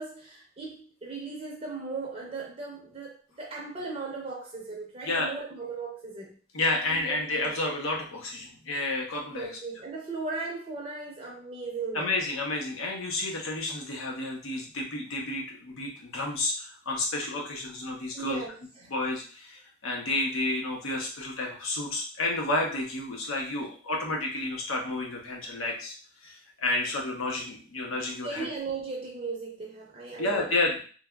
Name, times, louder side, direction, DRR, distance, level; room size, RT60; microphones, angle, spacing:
voice 1, 0.0-6.3 6.9-7.5 9.3-12.1 18.1-18.6 28.2-30.5, right 4 dB, 30° right, -2 dB, 0.5 m, -37 dB
voice 2, 6.5-9.5 11.9-18.4 18.9-25.9 26.2-28.5 30.2-30.8, left 2 dB, 90° left, 0 dB, 0.8 m, -31 dB
3.2 x 2.3 x 2.2 m, 0.40 s
head